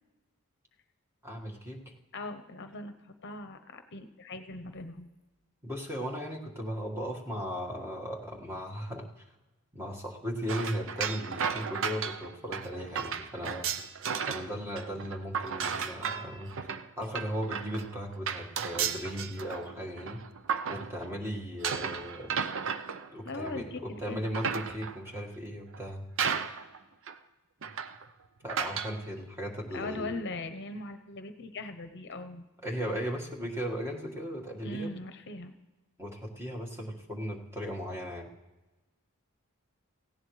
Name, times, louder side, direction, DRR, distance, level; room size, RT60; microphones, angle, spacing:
voice 1, 1.2-1.9 5.6-9.1 9.7-13.7 14.3-16.5 17.0-20.2 20.7-22.3 23.1-26.0 28.4-30.1 32.6-34.9 36.0-38.3, equal, 10° right, 0 dB, 1.7 m, -37 dB
voice 2, 2.1-5.1 23.2-24.3 29.7-32.4 34.6-35.5, left 2 dB, 55° left, 9 dB, 0.8 m, -40 dB
sound 1, 10.5-14.5 14.8-21.2 21.6-23.7 24.1-25.1 25.7-25.8 26.2-26.8 27.1-27.2 27.6-28.0 28.5-29.0, right 7 dB, 65° right, 0.7 m, -34 dB
18.0 x 16.0 x 3.2 m, 1.1 s
head